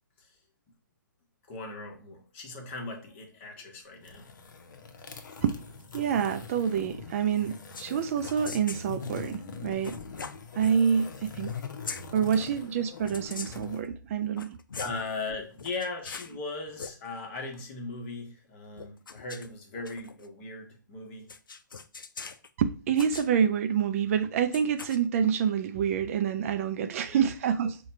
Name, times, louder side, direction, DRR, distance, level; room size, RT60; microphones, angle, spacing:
voice 1, 1.5-4.3 14.8-21.3 27.1-27.2, left 3 dB, 40° left, 1.2 m, -38 dB
sound 1, 3.9-13.8, left 5 dB, 65° left, 0.8 m, -42 dB
voice 2, 5.9-10.0 10.6-11.5 12.1-14.6 22.6-27.8, right 7 dB, 45° right, 0.4 m, -27 dB
sound 2, 7.7-7.9 8.2-8.9 9.8-10.7 11.4-11.6 11.8-12.0 13.1-13.7 14.2-15.0 15.6-16.3 16.7-16.9 18.8-20.3 21.3-22.5 22.9-23.3 24.5-25.0, left 5 dB, 85° left, 0.4 m, -41 dB
4.8 x 2.3 x 4.3 m
hypercardioid pair, 135°, 11 cm